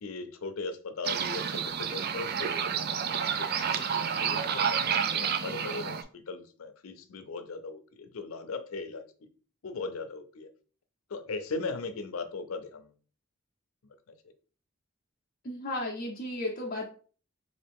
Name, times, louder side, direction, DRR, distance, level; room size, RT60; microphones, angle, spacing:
voice 1, 0.0-2.6 2.9-9.0 9.6-10.5 11.1-12.9, left 3 dB, 90° left, 9 dB, 0.6 m, -38 dB
sound 1, 1.0-6.0, right 7 dB, 50° right, 0.4 m, -30 dB
voice 2, 15.4-16.9, left 1 dB, 40° left, -1 dB, 0.6 m, -34 dB
4.0 x 2.5 x 3.4 m, 0.40 s
head